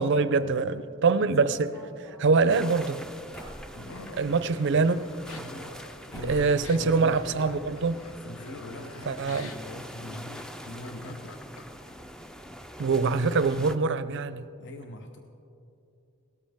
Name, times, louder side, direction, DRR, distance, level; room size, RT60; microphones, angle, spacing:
voice 1, 0.0-3.0 4.2-5.0 6.2-8.0 9.1-9.5 12.8-14.5, right 4 dB, 55° right, 0.5 m, -24 dB
sound 1, 1.3-4.2 5.0-5.8 6.1-6.6 6.9-7.7 7.9-8.0 8.2-8.3 9.0-9.1 9.4-9.6, equal, 20° left, 3.6 m, -47 dB
sound 2, 2.5-13.8, equal, 5° left, 0.4 m, -44 dB
voice 2, 3.7-4.5 5.3-5.8 6.1-7.2 8.2-11.4 14.6-15.2, left 1 dB, 55° left, 0.8 m, -42 dB
Laughter, 3.8-11.9, left 3 dB, 90° left, 1.0 m, -47 dB
17.5 x 13.0 x 3.5 m
head